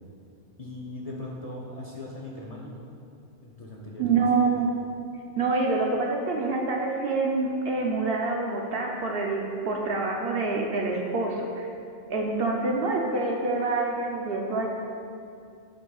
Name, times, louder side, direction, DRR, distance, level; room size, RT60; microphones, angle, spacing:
voice 1, 0.6-2.7 3.4-4.3, left 1 dB, 35° left, -2 dB, 0.7 m, -39 dB
voice 2, 4.0-4.7 5.4-11.7 12.1-14.7, right 3 dB, 60° right, 0 dB, 0.8 m, -26 dB
9.3 x 6.2 x 2.3 m, 2.5 s
omnidirectional pair, 1.3 m